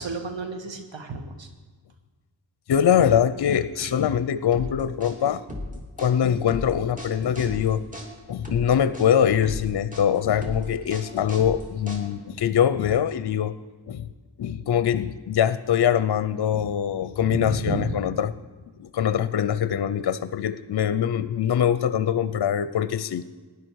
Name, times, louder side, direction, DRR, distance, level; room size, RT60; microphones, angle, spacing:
voice 1, 0.0-1.5 3.8-3.9 17.2-17.9, right 4 dB, 80° right, 6 dB, 1.3 m, -32 dB
voice 2, 2.7-5.4 5.7-7.8 8.3-13.5 13.9-14.1 14.4-18.3 18.8-23.2, left 9 dB, 60° left, 14 dB, 0.6 m, -23 dB
sound 1, 4.5-12.4, left 1 dB, 15° right, 2.8 m, -36 dB
15.5 x 10.5 x 4.6 m, 1.4 s
cardioid pair, 50°, 44 cm